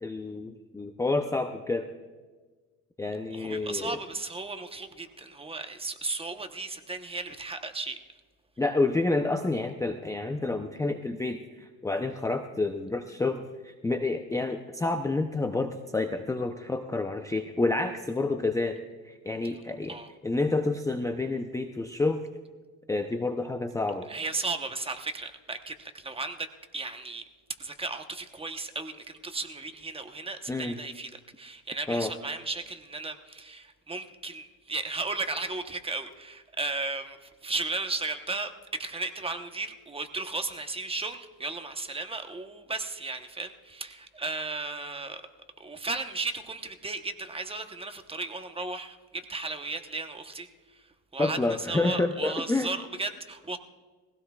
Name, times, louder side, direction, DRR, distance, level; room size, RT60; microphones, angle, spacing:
voice 1, 0.0-1.9 3.0-4.0 8.6-18.8 19.0-20.0 20.2-22.2 22.9-24.1 30.5-30.8 31.9-32.1 51.2-52.7, left 2 dB, 10° left, 6 dB, 0.6 m, -29 dB
voice 2, 3.3-8.0 19.9-20.1 24.1-27.2 27.6-45.2 45.6-50.5 50.7-50.8 51.1-53.6, right 3 dB, 15° right, 7 dB, 1.0 m, -35 dB
21.5 x 16.5 x 2.4 m, 1.3 s
cardioid pair, 110°, 36 cm